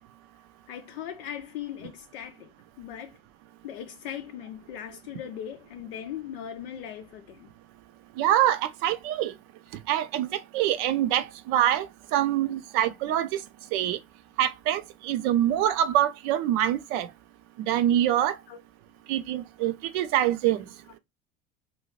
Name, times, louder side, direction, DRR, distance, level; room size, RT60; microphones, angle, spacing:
voice 1, 0.7-2.5 2.8-3.1 3.6-7.5 18.5-18.6, left 10 dB, 70° left, 0.4 m, -39 dB
voice 2, 8.2-9.3 9.9-11.9 12.1-13.3 13.7-14.0 14.4-17.1 17.7-18.3 19.1-20.6, right 12 dB, 60° right, 0.5 m, -25 dB
2.7 x 2.3 x 3.0 m
hypercardioid pair, 65°, 29 cm